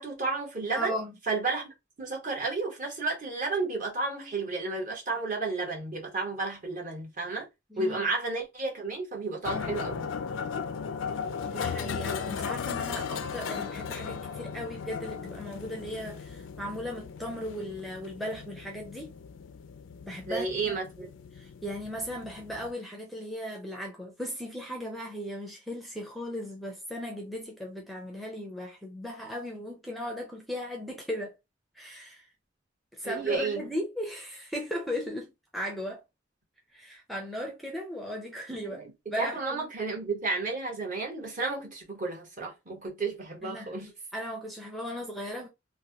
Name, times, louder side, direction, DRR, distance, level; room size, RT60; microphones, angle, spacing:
voice 1, 0.0-0.9 1.3-1.7 2.0-7.5 7.8-10.1 20.3-21.1 33.0-33.7 38.7-38.9 39.2-43.9, right 3 dB, 45° right, 1.2 m, -32 dB
voice 2, 0.7-1.1 7.7-8.0 11.4-19.1 20.0-20.8 21.3-31.3 31.8-32.3 32.9-36.0 36.7-38.8 39.1-39.7 43.4-45.5, equal, ahead, 0.5 m, -37 dB
sound 1, 9.4-22.7, left 6 dB, 80° left, 0.4 m, -37 dB
3.1 x 2.2 x 2.7 m
head